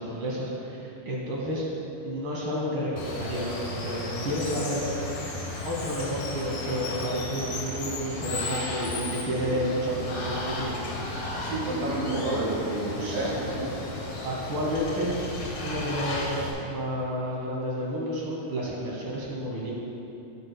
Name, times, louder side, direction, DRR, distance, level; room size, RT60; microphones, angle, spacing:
voice 1, 0.0-1.6 2.0-4.8 5.6-10.8 12.9-13.3 14.2-15.1 15.6-19.7, equal, 55° right, -4 dB, 1.5 m, -31 dB
Water, 3.0-16.5, left 2 dB, 80° left, 3.1 m, -34 dB
voice 2, 11.4-13.7, right 2 dB, 80° right, -6 dB, 3.7 m, -30 dB
14.5 x 8.6 x 2.2 m, 2.9 s
omnidirectional pair, 4.0 m